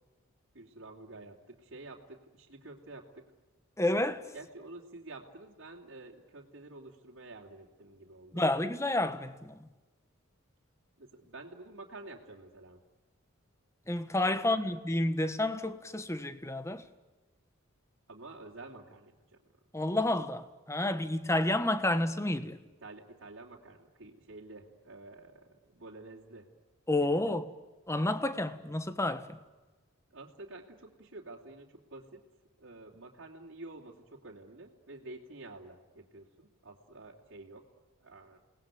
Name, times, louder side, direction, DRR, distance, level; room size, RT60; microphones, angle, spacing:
voice 1, 0.5-3.3 4.3-8.5 11.0-12.8 14.4-14.6 18.1-19.4 22.8-26.5 27.0-27.4 30.1-32.2 32.6-37.7 38.0-38.4, right 2 dB, 60° right, 3.2 m, -49 dB
voice 2, 3.8-4.3 8.3-9.7 13.9-16.9 19.7-22.6 26.9-27.5 27.9-29.4, left 1 dB, 15° left, 1.4 m, -30 dB
29.5 x 19.5 x 9.4 m
head